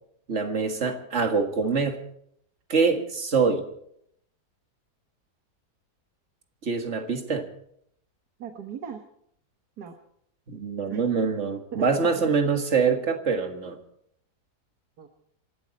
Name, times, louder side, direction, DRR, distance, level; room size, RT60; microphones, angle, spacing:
voice 1, 0.3-2.0 2.7-3.6 6.6-7.5 10.5-13.8, right 5 dB, 45° right, 5 dB, 2.1 m, -25 dB
voice 2, 8.4-9.0 9.8-9.9 10.9-11.0 11.7-12.1 12.4-12.6 15.0-15.1, right 8 dB, 75° right, 5 dB, 1.9 m, -38 dB
27.5 x 12.5 x 4.2 m, 0.71 s
omnidirectional pair, 1.7 m